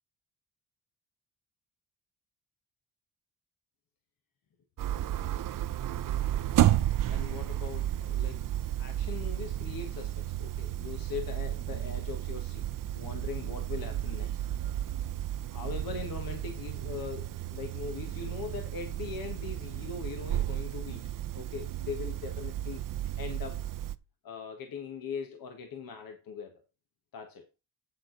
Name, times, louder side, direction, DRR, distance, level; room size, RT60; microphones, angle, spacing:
sound 1, 4.8-23.9, right 12 dB, 65° right, 0.6 m, -32 dB
voice 1, 4.9-5.3 7.1-8.5 8.8-12.7 12.9-14.3 15.5-21.0 21.3-23.6 24.2-26.5 27.1-27.4, left 6 dB, 75° left, 5 dB, 1.5 m, -41 dB
8.5 x 7.3 x 4.0 m, 0.26 s
cardioid pair, 110°, 35 cm